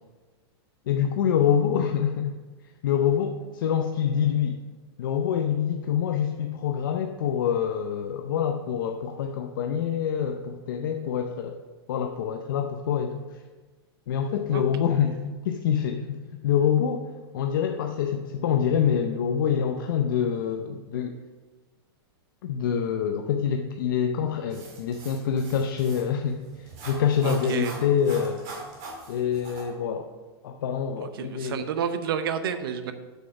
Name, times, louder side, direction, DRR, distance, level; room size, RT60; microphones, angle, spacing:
voice 1, 0.9-2.3 2.8-4.6 5.0-11.6 11.9-13.2 14.1-17.1 17.3-21.2 22.4-26.4 26.9-28.4 29.1-30.1 30.4-31.7, left 8 dB, 55° left, 4 dB, 0.6 m, -26 dB
sound 1, 24.5-29.6, right 3 dB, 30° right, 2.0 m, -43 dB
voice 2, 27.2-27.8 31.0-32.9, right 7 dB, 60° right, 10 dB, 0.8 m, -30 dB
7.9 x 6.4 x 5.7 m, 1.3 s
supercardioid pair, 180°, 13 cm